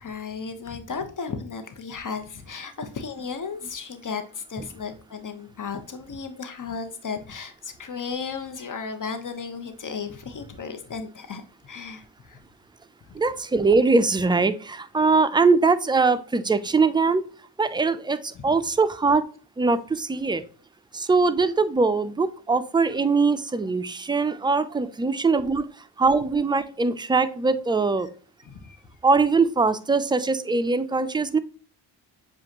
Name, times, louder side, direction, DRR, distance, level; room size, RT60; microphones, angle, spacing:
voice 1, 0.0-12.4 13.1-13.2 18.3-18.5 28.4-28.8, left 5 dB, 40° left, 8 dB, 1.0 m, -35 dB
voice 2, 13.1-17.3 17.6-19.2 19.6-20.4 20.9-28.1 29.0-31.4, right 4 dB, 10° right, 12 dB, 0.4 m, -22 dB
7.1 x 2.5 x 2.9 m, 0.41 s
supercardioid pair, 55°, 48 cm